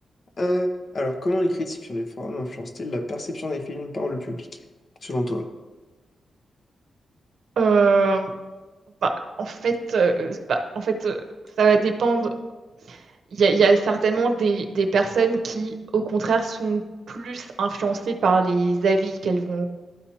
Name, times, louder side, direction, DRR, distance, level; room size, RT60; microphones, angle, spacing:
voice 1, 0.4-0.7 0.9-4.5 5.0-5.5, left 1 dB, 40° left, 5 dB, 0.7 m, -27 dB
voice 2, 7.6-8.3 9.0-9.1 9.4-11.2 11.6-12.3 12.9-13.0 13.3-16.8 17.1-19.7, right 4 dB, 70° right, 4 dB, 0.7 m, -22 dB
12.0 x 4.2 x 2.9 m, 1.3 s
wide cardioid pair, 125°, 0 cm